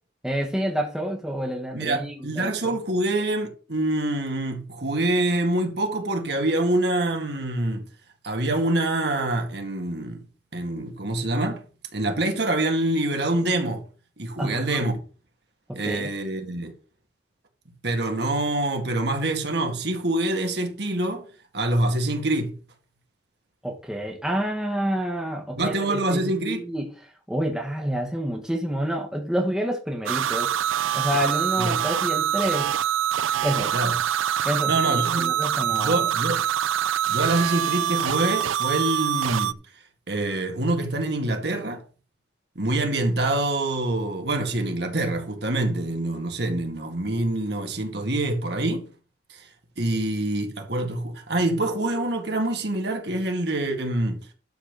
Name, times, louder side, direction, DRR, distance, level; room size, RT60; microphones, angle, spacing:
voice 1, 0.2-2.8 14.4-14.9 15.7-16.1 23.6-30.5 30.9-32.7 33.4-33.7 34.4-36.1, equal, 5° right, 1.4 m, -28 dB
voice 2, 1.7-7.8 8.2-10.2 10.5-11.6 11.9-13.8 14.2-15.0 15.8-16.7 17.8-21.2 21.5-22.5 25.6-26.6 31.6-31.7 33.7-33.9 34.7-35.3 35.7-36.4 37.1-39.6 40.1-41.8 42.6-48.9 49.3-49.5 49.8-54.2, right 2 dB, 55° right, 2.0 m, -25 dB
sound 1, 30.1-39.5, right 10 dB, 90° right, 0.5 m, -25 dB
11.5 x 4.3 x 6.7 m
head